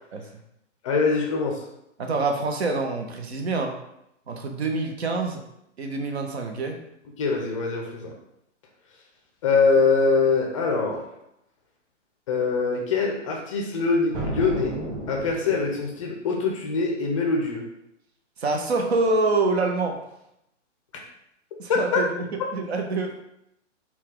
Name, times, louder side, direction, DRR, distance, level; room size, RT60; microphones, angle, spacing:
voice 1, 0.8-1.6 7.2-8.1 9.4-11.0 12.3-14.8 15.1-17.6 21.7-22.0, left 4 dB, 25° left, 0 dB, 0.5 m, -23 dB
voice 2, 2.0-3.7 4.3-5.4 5.8-6.8 18.4-20.0 21.6-22.3 22.5-23.2, right 3 dB, 60° right, 4 dB, 0.8 m, -26 dB
sound 1, 14.1-15.9, right 2 dB, 25° right, 1.2 m, -32 dB
4.2 x 2.3 x 3.6 m, 0.80 s
figure-of-eight pair, 120°, 37 cm